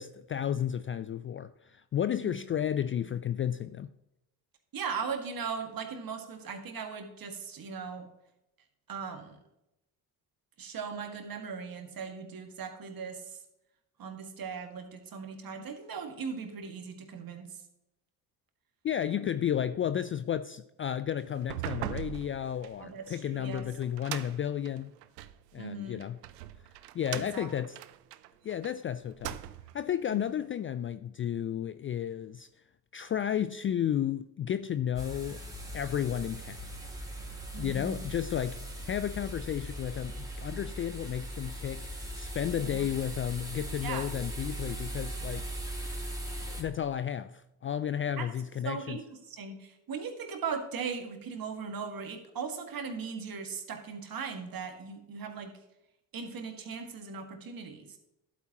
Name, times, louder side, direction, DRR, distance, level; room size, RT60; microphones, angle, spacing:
voice 1, 0.0-3.9 18.8-24.9 25.5-26.2 26.9-27.8 28.4-29.4 29.7-32.5 32.9-35.4 35.7-36.6 37.6-41.8 42.2-45.4 46.5-49.0, left 9 dB, 30° left, 0.4 m, -32 dB
voice 2, 4.7-8.1 8.9-9.4 10.6-13.2 14.0-17.5 19.1-19.4 22.8-23.6 25.6-26.0 27.1-27.5 30.1-30.2 37.5-38.0 42.6-42.9 43.8-44.1 48.2-48.3 48.6-55.5 56.1-57.9, right 5 dB, 45° right, 2.1 m, -38 dB
sound 1, 21.4-25.4 26.0-28.7 29.1-29.8, right 13 dB, 90° right, 0.6 m, -41 dB
sound 2, 35.0-46.6, right 1 dB, 5° right, 2.8 m, -39 dB
11.5 x 8.6 x 3.0 m
hypercardioid pair, 55°, 47 cm